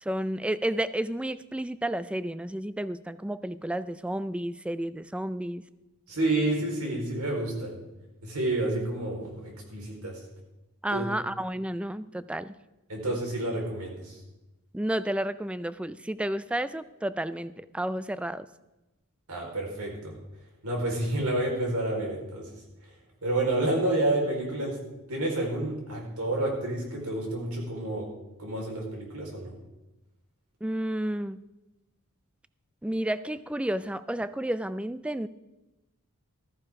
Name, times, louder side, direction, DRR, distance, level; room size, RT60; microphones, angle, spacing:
voice 1, 0.0-5.6 10.8-12.5 14.7-18.5 30.6-31.4 32.8-35.3, right 1 dB, 5° right, 15 dB, 0.3 m, -31 dB
voice 2, 6.1-7.8 8.2-10.2 10.9-11.1 12.9-14.2 19.3-20.1 20.6-22.5 23.2-24.8 25.1-28.1 28.4-29.5, right 2 dB, 85° right, -1 dB, 4.3 m, -29 dB
14.5 x 14.0 x 3.7 m, 1.0 s
head